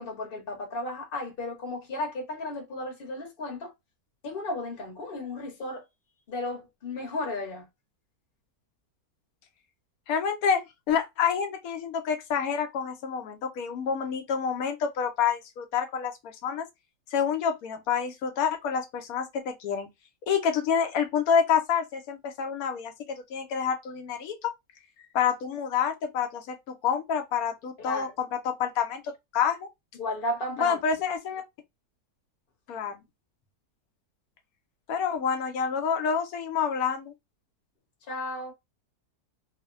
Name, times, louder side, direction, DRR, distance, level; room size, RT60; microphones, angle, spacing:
voice 1, 0.0-3.7 4.2-5.8 6.3-7.6 27.8-28.1 30.0-30.8 38.1-38.5, left 1 dB, 40° left, 1.0 m, -34 dB
voice 2, 10.1-16.7 17.1-19.9 20.3-24.5 25.1-29.7 30.6-31.4 32.7-32.9 34.9-37.1, left 7 dB, 70° left, 1.1 m, -28 dB
2.9 x 2.1 x 2.3 m
omnidirectional pair, 1.7 m